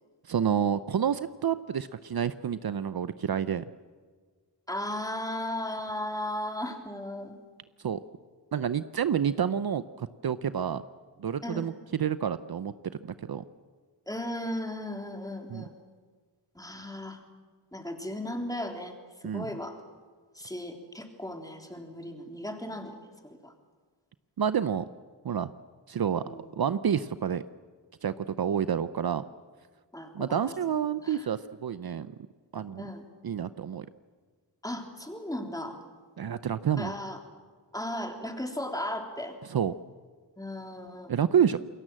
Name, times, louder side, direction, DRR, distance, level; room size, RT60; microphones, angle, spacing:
voice 1, 0.3-3.6 7.8-8.0 8.5-10.8 11.2-12.7 13.0-13.4 15.5-15.6 19.2-19.5 24.4-24.9 25.2-25.5 25.9-26.2 26.6-27.4 28.0-29.2 30.1-32.1 32.5-32.9 33.2-33.9 36.2-36.9 39.5-39.7 41.1-41.6, right 8 dB, 55° right, 13 dB, 0.8 m, -28 dB
voice 2, 4.7-7.4 11.4-11.7 14.1-15.7 16.6-17.2 17.7-18.9 19.2-19.8 20.3-23.0 23.4-23.5 26.2-26.4 29.9-31.3 32.8-33.0 34.6-35.8 36.8-37.2 37.7-39.4 40.4-41.1, left 1 dB, 10° left, 3 dB, 3.5 m, -36 dB
28.0 x 22.0 x 7.6 m, 1.5 s
wide cardioid pair, 95°, 43 cm